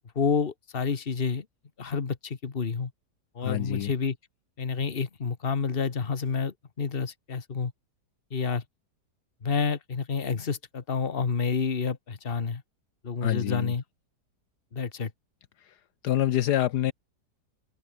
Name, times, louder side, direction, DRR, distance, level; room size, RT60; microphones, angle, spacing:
voice 1, 0.1-1.4 1.8-2.9 3.3-4.2 4.6-7.7 8.3-8.6 9.4-12.6 13.0-13.8 14.7-15.1, left 5 dB, 35° left, 1.6 m, -29 dB
voice 2, 3.4-3.9 13.2-13.7 16.0-16.9, left 12 dB, 75° left, 1.3 m, -26 dB
open air
omnidirectional pair, 1.8 m